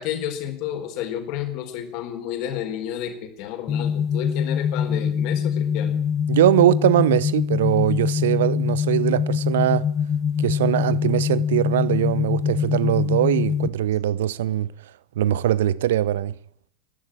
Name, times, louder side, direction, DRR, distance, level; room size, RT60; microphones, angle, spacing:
voice 1, 0.0-6.0, left 10 dB, 45° left, 4.4 m, -31 dB
sound 1, 3.7-13.7, left 7 dB, 25° left, 1.4 m, -24 dB
voice 2, 6.3-9.9 10.4-14.7 15.2-16.3, right 13 dB, 55° right, 0.8 m, -21 dB
28.0 x 11.5 x 9.0 m
figure-of-eight pair, 90°, 0 cm